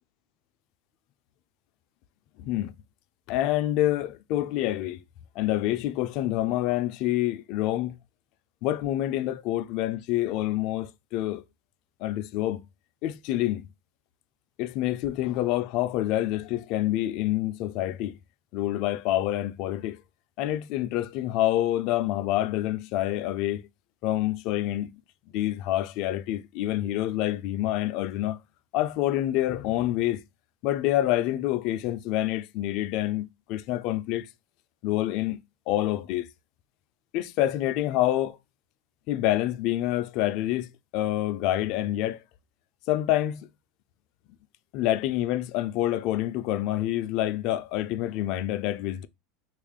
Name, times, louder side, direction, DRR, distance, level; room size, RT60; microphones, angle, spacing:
voice 1, 2.4-2.7 3.3-5.0 5.4-8.0 8.6-11.4 12.0-12.6 13.0-13.6 14.6-18.1 18.5-20.0 20.4-23.7 24.0-24.9 25.3-28.4 28.7-30.2 30.6-34.3 34.8-35.4 35.7-36.3 37.1-38.4 39.1-42.2 42.9-43.5 44.7-49.1, left 14 dB, 55° left, 0.3 m, -27 dB
3.1 x 2.4 x 3.5 m
supercardioid pair, 130°, 0 cm